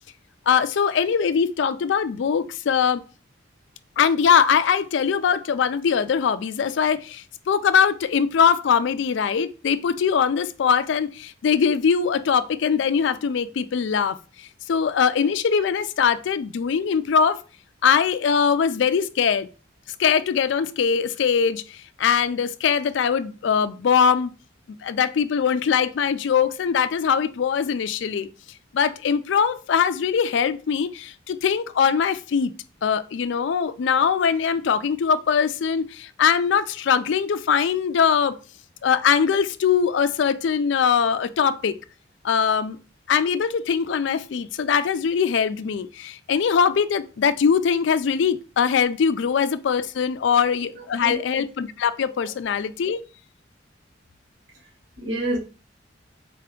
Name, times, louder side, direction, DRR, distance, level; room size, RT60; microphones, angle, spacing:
voice 1, 0.5-3.0 4.0-17.4 17.8-19.5 20.0-24.3 24.8-28.3 28.7-32.5 32.8-38.4 38.8-41.7 42.2-42.8 43.1-53.0, left 7 dB, 65° left, 0.4 m, -22 dB
voice 2, 50.8-51.2 52.2-52.3 54.5-54.7 55.0-55.4, right 1 dB, 65° right, 2.2 m, -29 dB
4.2 x 3.3 x 3.7 m
head